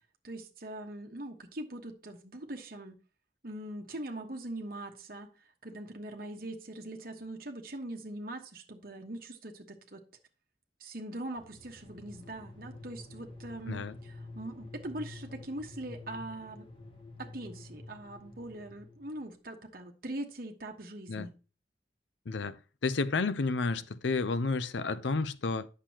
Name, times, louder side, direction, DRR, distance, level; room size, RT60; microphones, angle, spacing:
voice 1, 0.2-3.0 3.4-5.3 5.6-10.0 10.8-16.7 17.2-21.3, right 1 dB, 50° right, 1.2 m, -42 dB
sound 1, 11.4-19.2, left 2 dB, 30° left, 1.3 m, -49 dB
voice 2, 22.3-22.6 22.8-25.7, left 3 dB, 80° left, 0.6 m, -31 dB
9.1 x 6.7 x 2.9 m
head